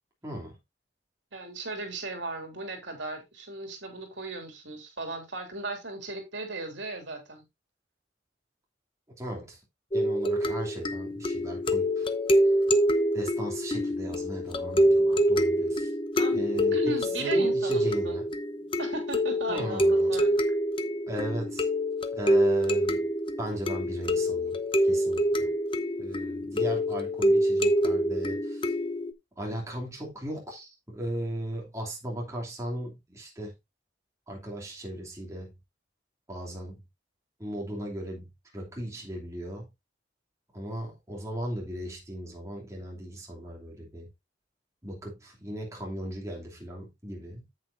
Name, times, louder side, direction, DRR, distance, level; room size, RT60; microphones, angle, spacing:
voice 1, 0.2-0.5 9.2-9.6 9.9-12.1 12.4-12.5 13.1-15.9 16.3-18.2 19.5-20.2 21.1-21.7 22.1-23.0 23.4-24.6 24.8-25.5 26.0-28.7 29.4-33.5 34.3-35.5 36.3-36.8 37.4-38.3 38.5-39.7 40.5-44.1 44.8-47.4, right 1 dB, 15° right, 2.8 m, -37 dB
voice 2, 1.3-7.4 16.1-16.4 16.7-18.2 18.8-20.4, right 2 dB, 75° right, 3.1 m, -36 dB
sound 1, 9.9-29.1, equal, 25° left, 0.8 m, -26 dB
9.3 x 8.2 x 2.7 m
head